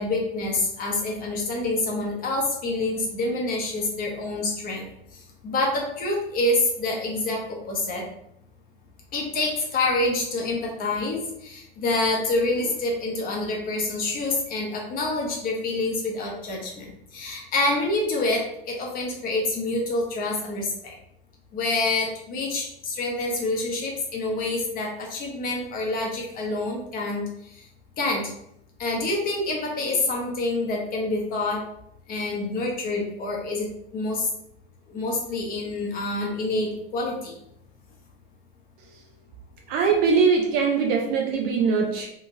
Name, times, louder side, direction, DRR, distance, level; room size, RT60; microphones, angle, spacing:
voice 1, 0.0-4.9 5.1-8.0 9.1-20.9 21.5-27.6 28.0-28.2 28.8-31.6 32.1-33.7 33.9-34.3 34.9-37.3, left 2 dB, 30° left, -1 dB, 0.8 m, -27 dB
voice 2, 39.7-42.1, right 5 dB, 35° right, 1 dB, 0.4 m, -21 dB
2.8 x 2.5 x 2.6 m, 0.77 s
figure-of-eight pair, 80°, 30 cm